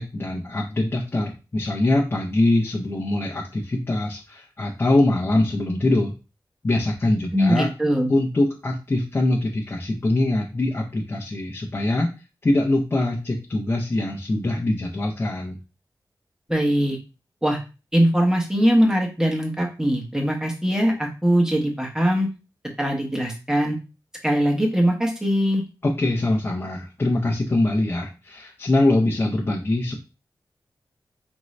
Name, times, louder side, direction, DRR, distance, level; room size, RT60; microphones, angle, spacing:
voice 1, 0.0-6.1 6.6-7.7 8.1-12.1 12.4-15.6 25.8-29.9, left 2 dB, 30° left, -2 dB, 0.7 m, -23 dB
voice 2, 7.3-8.1 16.5-17.0 17.4-17.6 17.9-22.3 22.8-23.8 24.2-25.6, equal, 5° right, 1 dB, 1.0 m, -21 dB
4.5 x 2.6 x 3.2 m, 0.31 s
wide cardioid pair, 110°, 8 cm